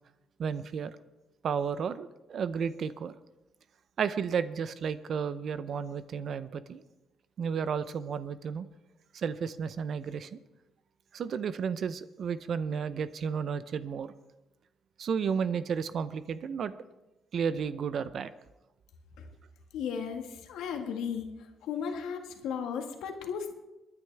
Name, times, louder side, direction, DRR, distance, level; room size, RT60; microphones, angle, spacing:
voice 1, 0.4-1.0 1.4-3.1 4.0-6.8 7.4-8.7 9.1-10.4 11.1-14.1 15.0-16.7 17.3-18.3, right 6 dB, 60° right, 14 dB, 0.6 m, -32 dB
voice 2, 19.7-21.3 21.6-23.5, left 7 dB, 90° left, 4 dB, 1.7 m, -35 dB
28.0 x 9.7 x 3.4 m, 1.0 s
cardioid pair, 90°, 0 cm